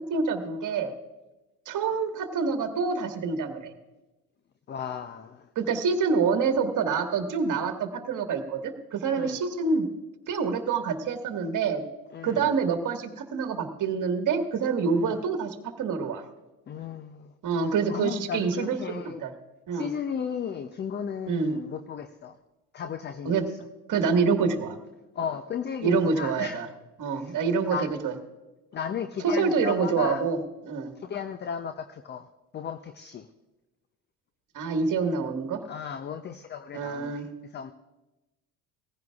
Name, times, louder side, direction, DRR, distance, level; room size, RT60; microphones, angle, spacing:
voice 1, 0.1-0.9 1.6-3.7 5.5-9.9 10.3-11.8 12.2-16.2 17.4-19.3 19.7-19.9 21.3-21.5 23.2-23.5 23.9-24.8 25.8-26.6 27.0-28.1 29.2-30.4 30.7-30.9 34.5-35.6 36.7-37.3, right 5 dB, 40° right, 5 dB, 1.8 m, -26 dB
voice 2, 4.7-5.5 9.1-9.4 12.1-12.5 15.0-15.2 16.7-17.3 17.9-19.3 19.7-22.4 22.7-23.6 25.1-26.6 27.1-27.4 27.7-27.9 28.7-30.2 31.0-32.3 32.5-33.3 35.6-37.2 37.5-37.7, left 7 dB, 25° left, 11 dB, 0.6 m, -35 dB
18.5 x 15.5 x 2.4 m, 1.1 s
hypercardioid pair, 70°, 47 cm